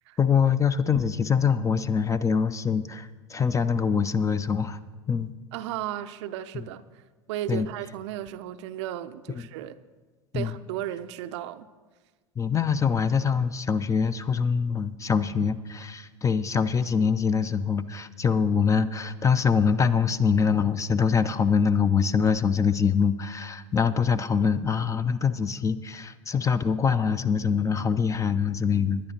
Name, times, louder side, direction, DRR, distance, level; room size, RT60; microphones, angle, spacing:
voice 1, 0.2-4.8 5.1-5.3 7.5-7.7 10.3-10.5 12.4-29.1, left 6 dB, 20° left, 0.5 m, -24 dB
voice 2, 5.5-7.0 7.3-9.8 10.3-11.7, right 12 dB, 60° right, 0.5 m, -35 dB
20.5 x 10.0 x 2.8 m
figure-of-eight pair, 80°, 17 cm